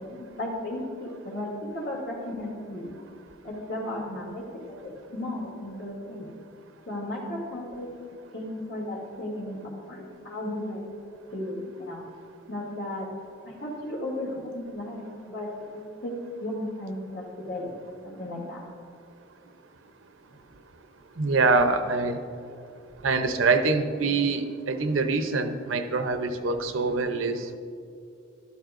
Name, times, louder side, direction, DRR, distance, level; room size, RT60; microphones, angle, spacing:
voice 1, 0.0-2.9 3.4-6.3 6.9-7.9 8.3-10.8 11.3-12.0 12.5-13.1 13.4-16.1 16.4-17.7 18.0-18.6 20.3-20.4, left 1 dB, 60° left, -4 dB, 2.5 m, -35 dB
voice 2, 21.2-22.2 23.0-27.4, right 3 dB, 85° right, 8 dB, 0.7 m, -24 dB
13.5 x 12.5 x 2.6 m, 2.5 s
head